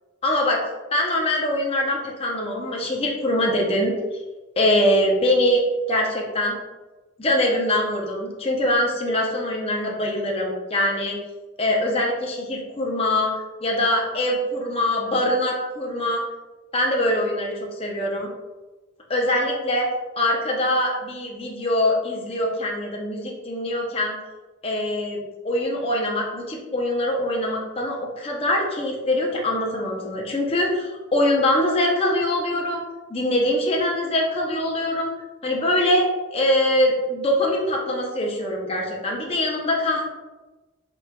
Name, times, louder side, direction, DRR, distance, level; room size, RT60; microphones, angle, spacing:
voice 1, 0.2-0.6 0.9-4.2 4.6-5.6 5.9-6.6 7.2-11.2 11.6-13.3 13.6-16.2 16.7-18.3 19.1-19.9 20.2-24.2 24.6-32.8 33.1-35.1 35.4-40.0, left 1 dB, 25° left, -2 dB, 0.6 m, -23 dB
5.4 x 2.8 x 2.2 m, 1.2 s
head